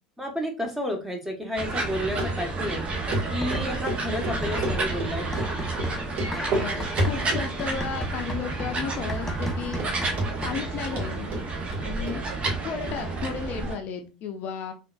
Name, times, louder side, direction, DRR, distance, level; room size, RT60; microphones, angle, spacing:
voice 1, 0.2-2.8 3.3-5.3, equal, 10° right, 2 dB, 1.1 m, -31 dB
sound 1, 1.6-13.7, right 3 dB, 30° right, 0.8 m, -31 dB
Run, 2.2-2.3 2.6-2.7 3.1-3.2 3.5-5.1 5.4-5.5 5.8-5.9 6.1-6.7 7.0-7.5 7.8-8.3 8.5-8.6 9.1-9.2 9.4-9.9 10.2-10.7 11.0-12.2 12.5-12.6 12.9-13.0, right 1 dB, 55° right, 1.5 m, -29 dB
sound 2, 3.4-4.0 4.3-10.8, equal, 10° left, 0.7 m, -36 dB
voice 2, 6.5-9.9 10.4-11.3 11.8-12.2 12.6-14.7, left 6 dB, 50° left, 5 dB, 0.5 m, -34 dB
3.7 x 2.5 x 2.3 m, 0.31 s
hypercardioid pair, 75°, 4 cm